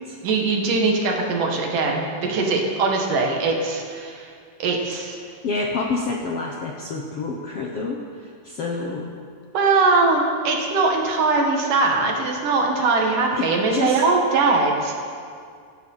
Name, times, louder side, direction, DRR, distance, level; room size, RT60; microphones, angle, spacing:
voice 1, 0.2-4.3 4.6-5.2 9.5-14.9, right 3 dB, 65° right, 1 dB, 3.4 m, -21 dB
voice 2, 5.2-9.1 13.3-14.0, left 3 dB, 65° left, 0 dB, 1.5 m, -28 dB
17.0 x 15.0 x 5.6 m, 2.2 s
omnidirectional pair, 4.1 m